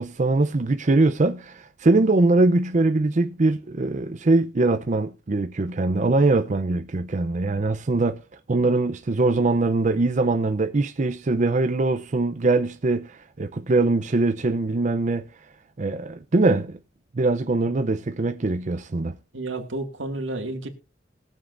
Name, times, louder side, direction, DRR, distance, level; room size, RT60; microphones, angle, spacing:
voice 1, 0.0-8.2 8.5-15.3 15.8-16.8 17.1-19.2, right 2 dB, 40° right, 0.5 m, -22 dB
voice 2, 19.3-20.7, right 2 dB, 90° right, 2.0 m, -31 dB
21.0 x 7.4 x 2.5 m
head